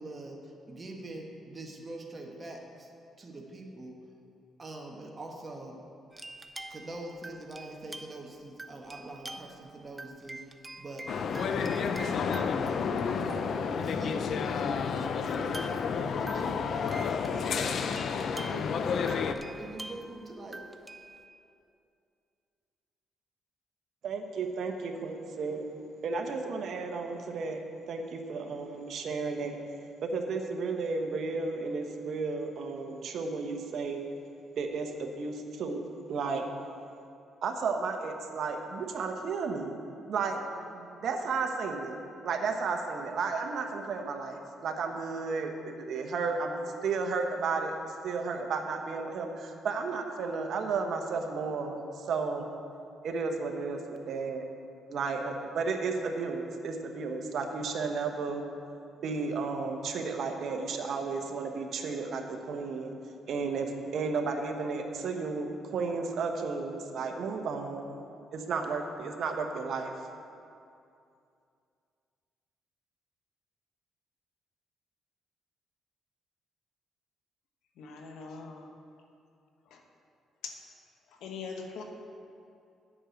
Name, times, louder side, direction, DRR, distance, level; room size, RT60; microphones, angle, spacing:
voice 1, 0.0-2.9 3.2-4.0 4.6-5.8 6.7-17.0 17.3-17.7 18.3-20.6, right 2 dB, 30° right, 0 dB, 1.5 m, -44 dB
sound 1, 6.1-8.3 8.6-9.7 10.0-13.8 14.4-14.5 15.3-21.2, right 2 dB, 15° right, 0.6 m, -46 dB
sound 2, 11.1-19.3, left 6 dB, 60° left, 0.5 m, -30 dB
voice 2, 24.0-25.7 26.0-27.6 27.9-29.6 30.0-34.0 34.6-35.8 36.1-36.5 37.4-39.8 40.1-45.5 45.8-47.7 48.0-52.5 53.0-54.4 54.9-58.4 59.0-62.9 63.3-68.0 68.3-69.9, right 4 dB, 65° right, 4 dB, 1.1 m, -33 dB
voice 3, 77.8-78.7 79.7-79.8 80.4-80.6 81.2-81.8, left 5 dB, 85° left, 3 dB, 1.1 m, -41 dB
8.7 x 6.5 x 8.0 m, 2.5 s
cardioid pair, 90°, 0 cm